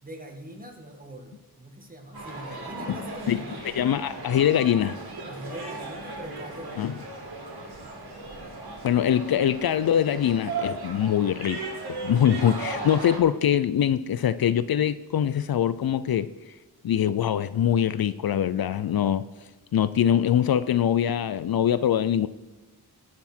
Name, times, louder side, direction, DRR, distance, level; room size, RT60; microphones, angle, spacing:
voice 1, 0.0-3.7 5.3-6.8, right 1 dB, 20° right, 1.9 m, -42 dB
sound 1, 2.1-13.2, right 3 dB, 70° right, 2.6 m, -37 dB
voice 2, 3.7-5.0 6.8-6.9 8.8-11.6 11.9-16.3 16.8-19.2 19.7-22.3, left 9 dB, 70° left, 0.5 m, -23 dB
18.0 x 6.0 x 4.4 m
wide cardioid pair, 95°, 38 cm